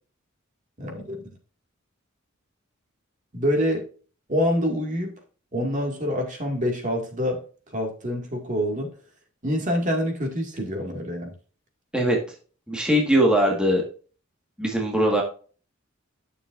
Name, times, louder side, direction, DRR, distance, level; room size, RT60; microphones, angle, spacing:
voice 1, 0.8-1.2 3.3-3.8 4.3-5.1 5.5-7.4 7.7-8.9 9.4-11.3, equal, 40° right, 2 dB, 2.0 m, -26 dB
voice 2, 12.7-13.8 14.6-15.2, equal, 5° right, -1 dB, 1.6 m, -20 dB
10.5 x 6.8 x 2.5 m, 0.39 s
head